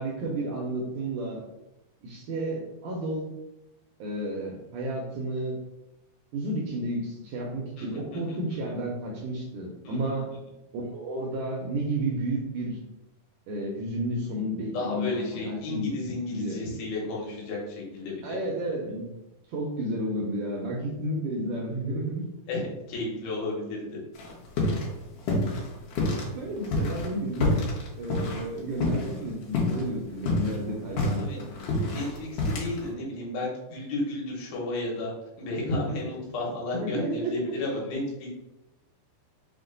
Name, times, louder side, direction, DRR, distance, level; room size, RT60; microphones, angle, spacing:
voice 1, 0.0-1.4 2.0-3.3 4.0-5.6 6.3-10.3 10.7-12.8 13.5-15.9 16.3-16.8 18.2-19.1 19.5-22.2 24.7-24.8 26.3-27.5 28.0-31.4 36.7-37.5, right 1 dB, 80° right, -1 dB, 1.8 m, -32 dB
voice 2, 7.8-8.4 8.6-8.7 9.8-10.2 14.7-18.4 22.5-24.0 31.1-35.1 35.4-38.3, left 2 dB, 85° left, -3 dB, 3.0 m, -33 dB
sound 1, 24.1-24.9 25.2-26.3 26.6-29.2 29.5-29.8 30.1-32.9, left 2 dB, 70° left, 2.3 m, -27 dB
5.9 x 2.1 x 3.8 m, 0.91 s
omnidirectional pair, 4.2 m